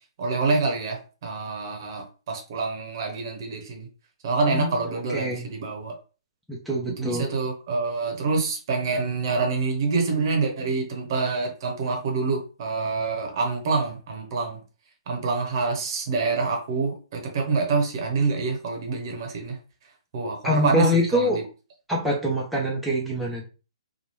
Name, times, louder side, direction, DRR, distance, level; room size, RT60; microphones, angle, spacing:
voice 1, 0.2-3.9 4.2-6.0 7.0-14.6 15.1-19.6 20.1-21.4, right 4 dB, 45° right, 2 dB, 0.9 m, -26 dB
voice 2, 4.4-5.5 6.5-7.3 20.4-21.4 21.9-23.5, left 1 dB, ahead, -5 dB, 0.6 m, -25 dB
3.0 x 2.2 x 3.1 m, 0.34 s
figure-of-eight pair, 125°, 3 cm